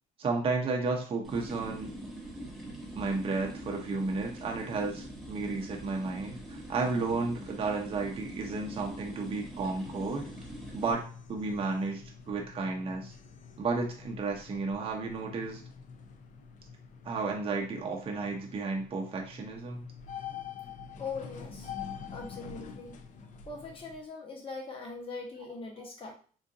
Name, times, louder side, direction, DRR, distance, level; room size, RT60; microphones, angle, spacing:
voice 1, 0.2-1.9 3.0-10.3 10.7-11.0 11.3-13.1 13.6-15.6 17.0-19.9 25.8-25.9, right 3 dB, 35° right, 1 dB, 0.7 m, -33 dB
sound 1, 1.2-10.9, right 1 dB, ahead, 0.9 m, -44 dB
sound 2, 9.6-24.0, left 6 dB, 50° left, 0.5 m, -46 dB
voice 2, 21.0-21.7 22.1-23.0 23.5-26.1, left 4 dB, 30° left, 0 dB, 1.1 m, -41 dB
3.8 x 2.5 x 2.5 m, 0.41 s
cardioid pair, 110°, 17 cm